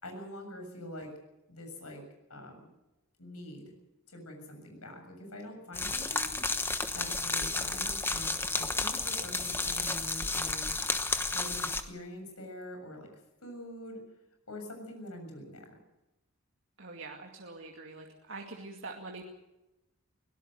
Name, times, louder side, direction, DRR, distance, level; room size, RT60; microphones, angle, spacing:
voice 1, 0.0-1.1 1.5-2.0 2.3-2.7 3.2-3.7 4.1-6.3 6.9-10.7 11.3-13.1 13.4-14.0 14.5-15.8, left 1 dB, 80° left, 4 dB, 7.1 m, -45 dB
sound 1, 5.7-11.8, left 3 dB, 10° left, 1.1 m, -32 dB
voice 2, 16.8-19.3, right 3 dB, 55° right, 1 dB, 2.3 m, -44 dB
23.0 x 17.5 x 6.6 m, 0.96 s
head